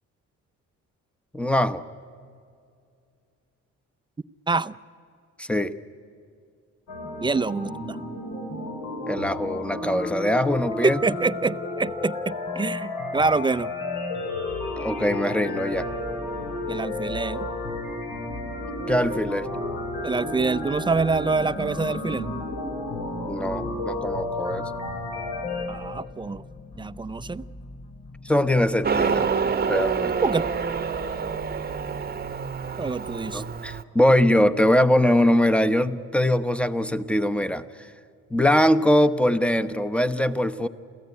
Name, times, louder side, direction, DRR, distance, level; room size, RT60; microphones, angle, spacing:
voice 1, 1.3-1.8 5.4-5.7 9.1-11.0 14.8-15.9 18.9-19.5 23.3-24.6 28.2-29.3 29.7-30.2 33.3-37.9 38.3-40.7, left 1 dB, 5° left, 12 dB, 0.9 m, -22 dB
sound 1, 6.9-25.7, left 2 dB, 80° left, 5.4 m, -32 dB
voice 2, 7.2-8.0 10.8-13.7 16.7-17.5 20.0-22.5 25.7-26.4 26.8-27.4 30.2-30.4 32.8-33.4, right 4 dB, 15° right, 15 dB, 0.5 m, -26 dB
sound 2, 15.7-33.5, left 2 dB, 35° left, 4.4 m, -45 dB
Motorcycle, 28.8-33.8, right 5 dB, 30° right, 1.0 m, -27 dB
28.5 x 15.0 x 9.6 m, 2.3 s
cardioid pair, 90°, 30 cm